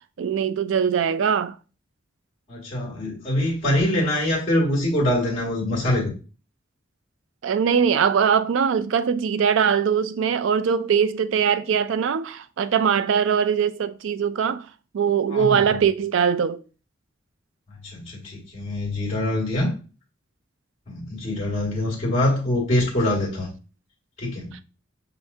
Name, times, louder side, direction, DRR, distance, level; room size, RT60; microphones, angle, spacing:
voice 1, 0.2-1.5 7.4-14.7 14.9-16.6, right 7 dB, 70° right, 0.4 m, -21 dB
voice 2, 2.5-6.1 15.3-15.8 17.8-19.7 20.9-23.5 24.2-24.6, left 1 dB, 30° left, 1.8 m, -24 dB
5.6 x 3.3 x 2.7 m
head